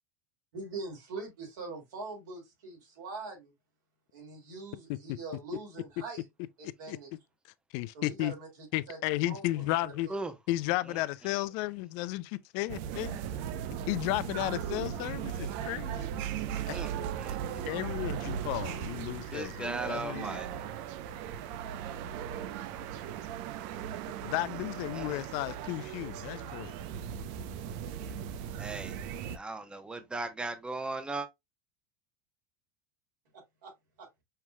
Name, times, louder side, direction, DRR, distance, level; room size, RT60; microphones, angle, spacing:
voice 1, 0.5-3.5 4.1-6.2 6.8-7.1 7.9-9.0 9.2-10.2 33.3-33.7 34.0-34.1, right 3 dB, 85° right, 2.7 m, -43 dB
voice 2, 7.7-8.3 8.7-10.1 10.5-13.2 13.9-16.1 16.7-16.8 17.7-20.4 24.2-26.8, left 18 dB, 65° left, 0.4 m, -33 dB
sound 1, 12.7-29.4, right 9 dB, 65° right, 0.6 m, -38 dB
voice 3, 16.7-17.7 19.3-20.6 24.9-25.2 28.6-29.0 29.3-31.3, right 3 dB, 10° right, 0.8 m, -38 dB
5.6 x 3.0 x 2.2 m
supercardioid pair, 105°, 10 cm